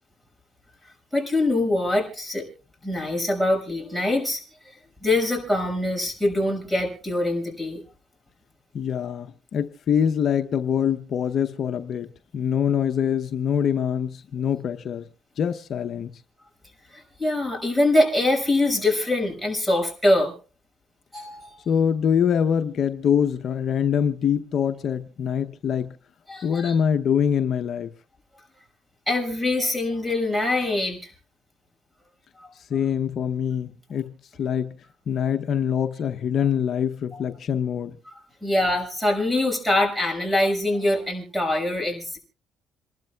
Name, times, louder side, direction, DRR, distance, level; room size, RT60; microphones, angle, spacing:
voice 1, 1.1-2.4 2.8-4.4 5.0-7.8 16.9-20.3 21.1-21.6 26.3-26.7 29.1-31.1 32.4-32.5 36.4-36.5 37.1-37.2 38.0-38.1 38.4-42.2, left 1 dB, 5° right, 6.0 m, -24 dB
voice 2, 8.7-12.1 12.3-15.0 15.4-16.1 21.7-25.9 26.4-27.9 32.7-34.1 34.4-34.7 35.1-37.9, left 8 dB, 55° left, 0.8 m, -24 dB
27.5 x 12.0 x 2.3 m
cardioid pair, 95°, 0 cm